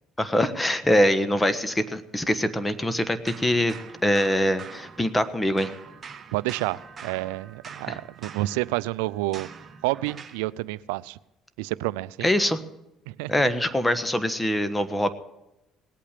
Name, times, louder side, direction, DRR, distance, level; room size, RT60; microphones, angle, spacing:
voice 1, 0.2-3.7 4.0-5.7 7.9-8.0 12.2-12.6 13.3-15.1, left 1 dB, 10° left, 12 dB, 1.3 m, -23 dB
sound 1, 3.3-5.3 5.6-10.5, right 6 dB, 40° right, 1.2 m, -44 dB
voice 2, 6.3-9.5 9.8-11.2 11.6-12.3 13.1-13.5, right 19 dB, 90° right, 19 dB, 0.4 m, -29 dB
18.5 x 8.6 x 6.7 m, 0.94 s
supercardioid pair, 80°, 0 cm